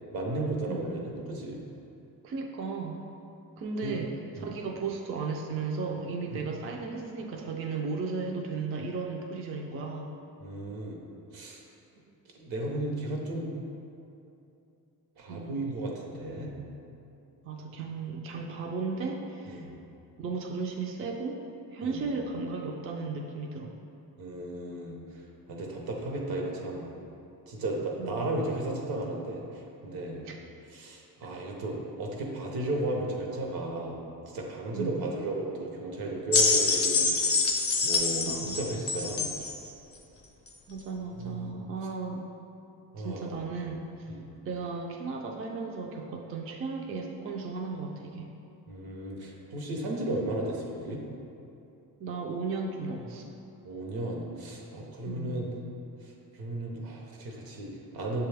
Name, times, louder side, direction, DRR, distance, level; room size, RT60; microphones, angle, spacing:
voice 1, 0.1-1.6 3.8-3.9 4.4-4.5 6.3-6.4 10.4-11.0 11.3-11.6 12.3-13.5 15.2-16.5 19.5-19.7 21.8-22.1 24.2-25.0 25.5-26.9 27.5-30.2 30.7-34.0 34.3-37.4 37.8-39.3 41.2-41.6 42.9-43.4 44.1-44.3 48.7-51.0 53.6-55.5 56.0-58.3, right 2 dB, 75° right, 0 dB, 0.8 m, -34 dB
voice 2, 2.2-3.0 3.6-10.1 15.3-15.6 17.4-19.7 20.2-21.4 21.7-23.7 28.0-28.3 30.3-30.4 34.7-35.1 38.2-38.6 40.7-42.3 43.0-44.1 44.4-48.3 52.0-53.3 55.1-55.4, right 4 dB, 35° right, 1 dB, 0.4 m, -35 dB
sound 1, 36.3-39.6 40.5-40.6, left 4 dB, 40° left, 0.6 m, -26 dB
6.7 x 2.3 x 3.3 m, 2.7 s
cardioid pair, 105°, 38 cm